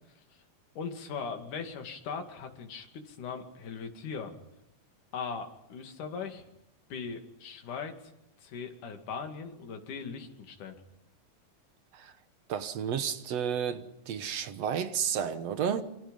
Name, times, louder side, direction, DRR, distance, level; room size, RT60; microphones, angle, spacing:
voice 1, 0.1-0.4 0.8-4.3 5.1-6.5 6.9-8.1 8.4-10.8, left 5 dB, 70° left, 3.9 m, -39 dB
voice 2, 12.5-15.8, right 8 dB, 60° right, 2.1 m, -32 dB
26.5 x 24.5 x 5.5 m
omnidirectional pair, 3.8 m